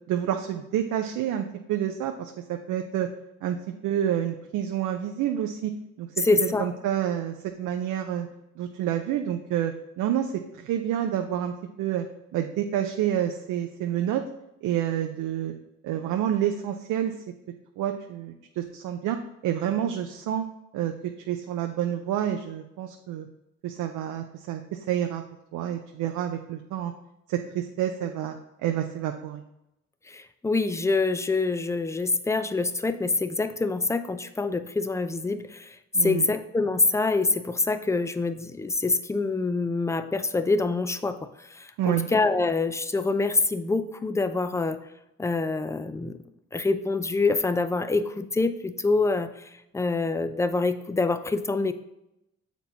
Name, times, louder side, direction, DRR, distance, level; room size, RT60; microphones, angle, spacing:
voice 1, 0.1-3.1 3.4-3.6 3.8-5.7 6.0-8.3 8.6-12.1 12.3-14.2 14.6-15.5 15.8-17.1 17.8-20.4 20.7-20.9 21.3-23.3 23.6-25.2 25.5-26.9 27.3-28.4 28.6-29.4 35.9-36.3 41.8-42.1, right 10 dB, 85° right, 5 dB, 0.6 m, -28 dB
voice 2, 6.2-6.7 30.1-35.8 36.0-44.8 45.2-46.2 46.5-51.7, left 3 dB, 10° left, 11 dB, 0.4 m, -26 dB
7.1 x 4.5 x 4.0 m, 0.87 s
cardioid pair, 90°, 30 cm